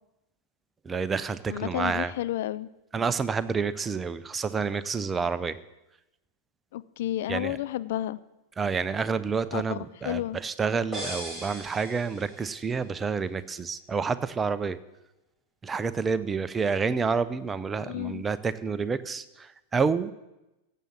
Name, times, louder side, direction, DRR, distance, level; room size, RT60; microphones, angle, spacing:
voice 1, 0.8-2.1 2.9-5.6 7.3-7.6 8.6-14.8 15.6-20.1, right 5 dB, 15° right, 14 dB, 0.7 m, -29 dB
voice 2, 1.5-2.7 6.7-8.2 9.5-10.4 17.8-18.2, left 13 dB, 55° left, 15 dB, 0.4 m, -31 dB
sound 1, 10.9-12.7, right 1 dB, 5° left, 4.7 m, -38 dB
16.0 x 7.6 x 7.1 m, 0.96 s
figure-of-eight pair, 90°, 0 cm